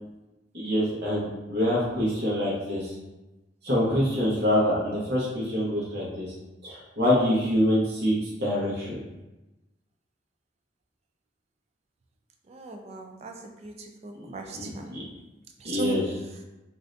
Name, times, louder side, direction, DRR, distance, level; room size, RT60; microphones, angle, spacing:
voice 1, 0.5-2.9 3.6-6.3 6.6-9.0 14.2-15.0 15.6-16.0, equal, 65° right, -7 dB, 1.0 m, -26 dB
voice 2, 12.5-14.9 15.6-16.0, right 1 dB, 35° right, 3 dB, 0.4 m, -36 dB
2.6 x 2.6 x 3.2 m, 1.0 s
head